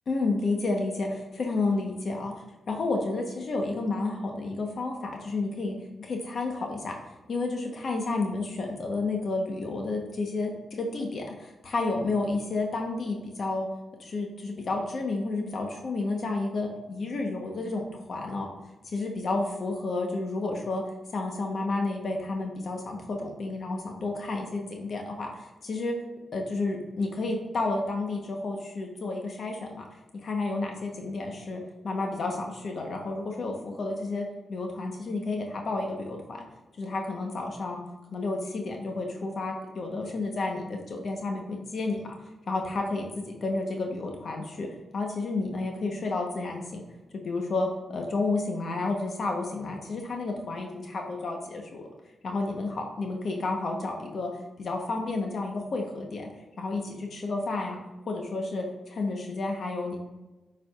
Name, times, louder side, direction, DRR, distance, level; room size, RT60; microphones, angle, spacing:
voice 1, 0.1-7.0 7.3-13.7 14.0-18.5 18.9-20.8 21.1-26.0 26.3-29.8 30.2-36.5 36.8-37.8 38.1-42.1 42.5-44.7 44.9-46.8 47.2-51.9 52.2-54.3 54.6-56.3 56.6-57.8 58.1-60.0, left 3 dB, 60° left, 2 dB, 1.0 m, -31 dB
8.2 x 4.8 x 2.4 m, 1.1 s
cardioid pair, 80°, 0 cm